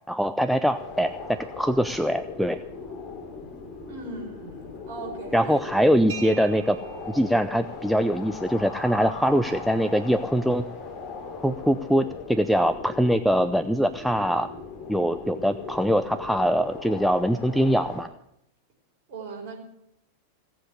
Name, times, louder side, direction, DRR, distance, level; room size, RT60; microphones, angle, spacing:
voice 1, 0.1-2.6 5.3-6.8 7.1-10.6 11.4-14.5 14.9-18.1, equal, ahead, 8 dB, 0.6 m, -23 dB
sound 1, 0.7-18.0, left 5 dB, 30° left, 3.9 m, -39 dB
voice 2, 3.9-5.6 6.1-6.2 19.1-19.6, right 3 dB, 45° right, -1 dB, 5.3 m, -39 dB
sound 2, 6.1-13.6, right 9 dB, 65° right, 0.9 m, -46 dB
17.5 x 7.6 x 8.4 m, 0.76 s
figure-of-eight pair, 90°, 0 cm